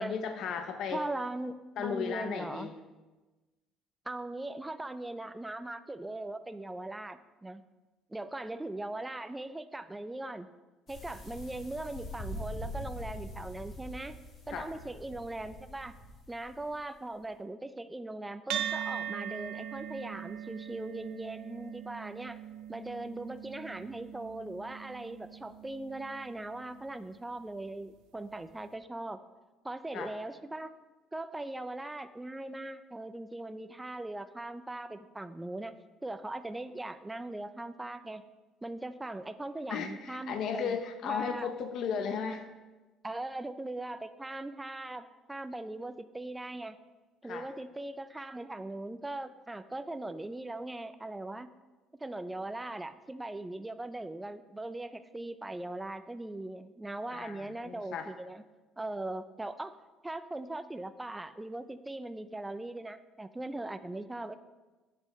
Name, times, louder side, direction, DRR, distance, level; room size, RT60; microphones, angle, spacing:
voice 1, 0.0-1.0 1.8-2.7 14.5-14.7 29.9-30.1 39.7-42.4 47.3-47.5 57.1-58.1, left 6 dB, 50° left, 7 dB, 0.6 m, -35 dB
voice 2, 0.9-2.7 4.1-7.6 8.1-10.5 10.9-14.2 14.5-15.9 16.3-22.4 22.7-29.2 29.6-30.7 31.1-35.7 36.0-38.2 38.6-40.8 41.0-41.5 43.0-46.8 47.2-51.5 52.0-58.4 58.8-59.8 60.0-64.3, right 2 dB, 10° right, 11 dB, 0.3 m, -40 dB
sound 1, 10.9-16.8, left 1 dB, 35° left, 1.5 m, -43 dB
sound 2, 18.5-27.2, right 10 dB, 80° right, 0.6 m, -41 dB
10.5 x 7.5 x 3.1 m, 1.2 s
cardioid pair, 160°, 0 cm